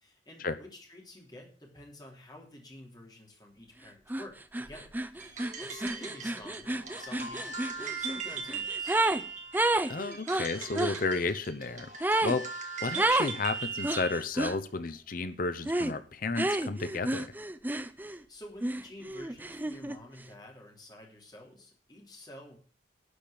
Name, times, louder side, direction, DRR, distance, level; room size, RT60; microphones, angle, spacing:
voice 1, 0.0-9.0 12.9-13.1 18.0-22.6, left 1 dB, 20° left, 0 dB, 2.9 m, -50 dB
sound 1, 4.1-4.3 4.5-9.2 9.5-11.0 12.0-12.4 13.0-13.4 13.8-14.6 15.7-16.0 16.4-18.2 18.6-20.0, right 2 dB, 10° right, 0.5 m, -30 dB
sound 2, 5.2-14.2, right 5 dB, 40° right, 1.9 m, -39 dB
voice 2, 9.9-11.9 12.2-12.5 12.8-17.3, left 3 dB, 50° left, 11 dB, 0.7 m, -32 dB
11.5 x 5.1 x 8.4 m, 0.43 s
head